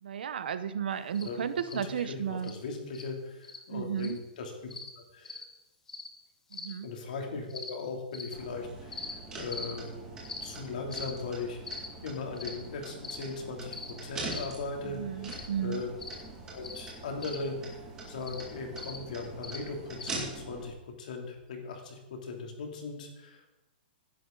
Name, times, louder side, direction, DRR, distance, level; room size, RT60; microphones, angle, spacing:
voice 1, 0.0-2.5 3.7-4.2 6.5-6.9 14.8-15.8, right 8 dB, 70° right, 12 dB, 0.9 m, -34 dB
sound 1, 1.1-1.3 1.7-1.8 2.4-2.5 2.9-3.1 3.4-3.6 4.0-4.2 4.7-4.9 5.2-5.4 5.9-6.1 6.5-6.7 7.5-7.7 8.1-8.3 8.9-9.1 9.5-9.7 10.2-10.4 10.9-11.1 11.6-11.9 12.4-12.5 13.0-13.2 13.7-13.9 14.3-14.5 15.3-15.5 16.0-16.2 16.6-16.8 17.2-17.4 18.2-18.4 18.8-19.0 19.4-19.6 20.0-20.1, left 4 dB, 5° left, 0.9 m, -41 dB
voice 2, 1.7-4.7 5.0-5.4 6.8-15.9 16.5-17.8 18.1-23.5, left 4 dB, 50° left, 2 dB, 3.0 m, -39 dB
sound 2, 8.3-20.7, right 3 dB, 10° right, 2.1 m, -43 dB
17.5 x 10.5 x 3.9 m, 0.98 s
hypercardioid pair, 175°, 5 cm